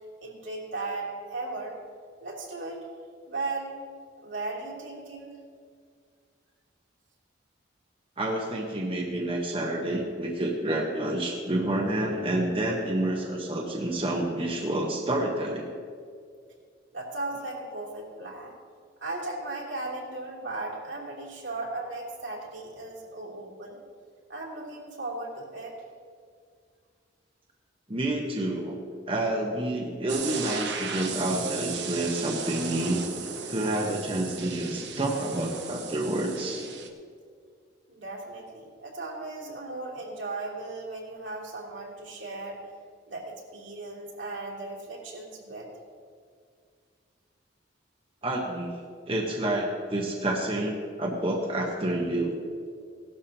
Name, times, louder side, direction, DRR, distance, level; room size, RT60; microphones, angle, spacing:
voice 1, 0.2-1.7 2.2-2.9 3.3-3.8 4.2-5.3 16.9-18.5 19.0-23.8 24.3-25.7 37.9-42.6 43.1-45.7, right 2 dB, 85° right, -4 dB, 3.0 m, -36 dB
voice 2, 8.2-15.7 27.9-28.8 29.1-33.0 33.5-36.6 48.2-48.7 49.1-52.3, right 1 dB, 30° right, -1 dB, 1.1 m, -29 dB
sound 1, 30.1-36.9, right 5 dB, 65° right, 1.0 m, -36 dB
17.5 x 12.0 x 2.9 m, 2.1 s
head